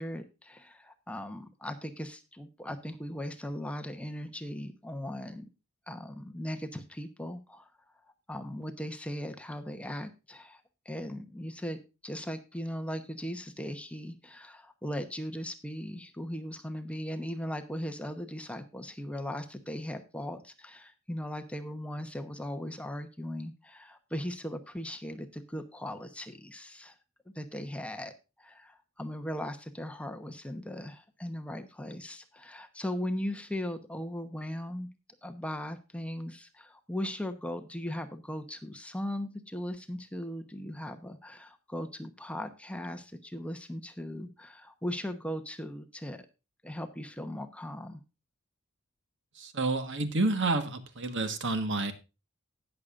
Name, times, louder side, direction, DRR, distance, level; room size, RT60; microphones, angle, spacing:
voice 1, 0.0-5.4 5.9-7.7 8.3-26.9 27.3-28.1 28.4-34.9 35.2-46.3 46.6-48.0, equal, 5° left, 7 dB, 0.9 m, -38 dB
voice 2, 49.4-51.9, right 2 dB, 60° right, 10 dB, 1.4 m, -29 dB
18.5 x 6.6 x 2.5 m, 0.29 s
head